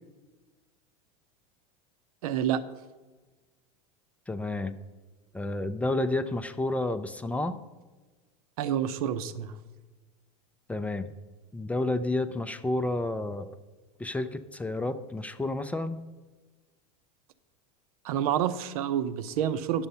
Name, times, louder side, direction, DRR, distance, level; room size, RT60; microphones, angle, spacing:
voice 1, 2.2-2.6 8.6-9.5 18.0-19.9, right 10 dB, 80° right, 13 dB, 0.7 m, -28 dB
voice 2, 4.3-4.7 5.3-7.6 10.7-11.1 11.5-13.5 14.0-16.0, left 2 dB, 5° left, 10 dB, 0.4 m, -30 dB
10.5 x 7.0 x 5.5 m, 1.2 s
supercardioid pair, 140°, 19 cm